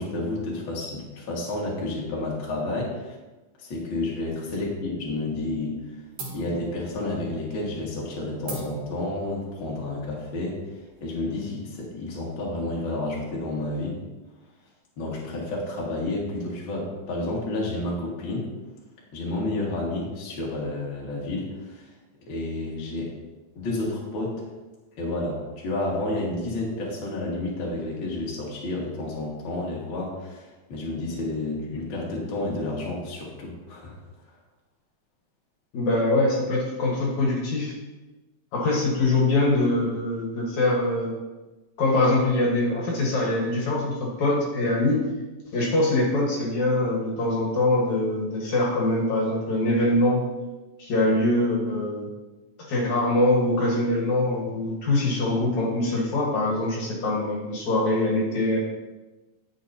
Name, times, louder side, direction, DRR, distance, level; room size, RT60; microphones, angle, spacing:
voice 1, 0.0-3.2 3.6-5.8 6.3-10.6 11.0-14.0 15.0-18.5 19.1-21.9 22.3-23.1 23.6-24.5 25.0-33.9, left 2 dB, 45° left, -4 dB, 2.1 m, -30 dB
sound 1, 4.6-5.1 5.4-5.8 6.2-11.3, right 2 dB, 80° right, 3.7 m, -42 dB
voice 2, 35.7-37.7 38.5-41.1 41.8-45.1 45.5-50.2 50.8-52.1 52.7-58.6, left 2 dB, 60° left, -3 dB, 2.6 m, -23 dB
10.5 x 7.1 x 2.8 m, 1.1 s
omnidirectional pair, 3.9 m